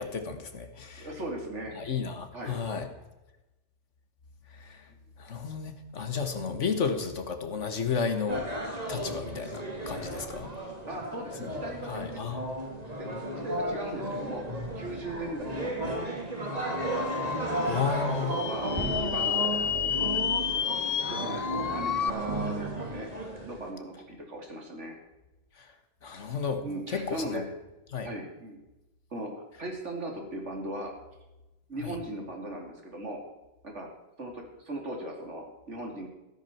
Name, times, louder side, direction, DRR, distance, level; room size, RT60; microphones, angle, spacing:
voice 1, 0.0-1.1 1.8-2.9 4.6-4.8 5.2-8.5 8.9-10.5 11.9-12.4 17.7-18.3 26.0-27.5 27.9-28.1 31.8-32.0, left 5 dB, 90° left, 8 dB, 1.9 m, -32 dB
voice 2, 1.0-1.8 2.3-2.6 10.8-12.3 13.0-14.4 14.7-15.7 17.5-19.5 21.1-23.1 23.5-25.0 26.6-27.4 28.0-28.6 29.1-29.3 29.6-30.9 31.7-33.2 33.6-33.9 34.2-36.1, right 1 dB, 80° right, 1 dB, 3.4 m, -38 dB
sound 1, 8.3-23.7, right 1 dB, 35° right, 2.5 m, -34 dB
sound 2, 16.5-22.1, left 8 dB, 55° left, 0.4 m, -31 dB
14.5 x 13.5 x 4.5 m, 1.0 s
omnidirectional pair, 1.2 m